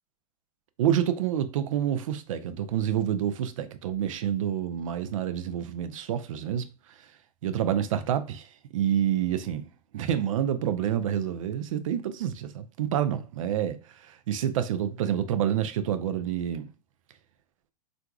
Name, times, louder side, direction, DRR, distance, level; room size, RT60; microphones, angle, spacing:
voice 1, 0.8-6.7 7.0-7.1 7.4-16.7, right 10 dB, 55° right, 0.5 m, -28 dB
4.5 x 2.5 x 2.3 m
figure-of-eight pair, 100°, 20 cm